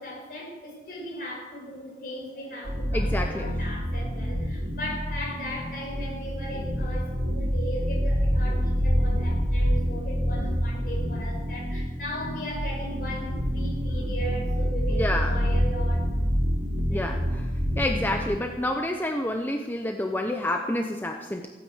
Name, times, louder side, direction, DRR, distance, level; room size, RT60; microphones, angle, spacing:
voice 1, 0.0-16.1 16.9-17.1, equal, 55° left, -1 dB, 5.8 m, -37 dB
sound 1, 2.6-18.4, equal, 75° right, 3.4 m, -27 dB
voice 2, 2.9-3.5 14.9-15.3 16.9-17.5 17.8-21.5, left 1 dB, 10° left, 4 dB, 0.8 m, -28 dB
15.5 x 9.1 x 8.0 m, 1.2 s
head